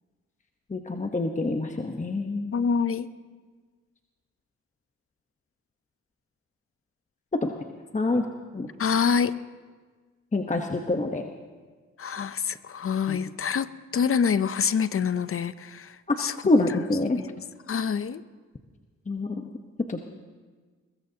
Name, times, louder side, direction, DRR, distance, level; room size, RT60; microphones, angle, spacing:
voice 1, 0.7-2.5 7.3-7.5 7.9-8.2 8.5-8.7 10.3-11.2 13.1-13.2 16.1-17.2 19.1-19.4 19.9-20.0, left 2 dB, 25° left, 3 dB, 1.0 m, -26 dB
voice 2, 2.5-3.1 8.8-9.3 12.0-16.3 16.7-16.8 17.1-17.2 17.7-18.2, left 6 dB, 45° left, 15 dB, 0.6 m, -26 dB
22.0 x 21.5 x 2.8 m, 1.4 s
cardioid pair, 65°, 31 cm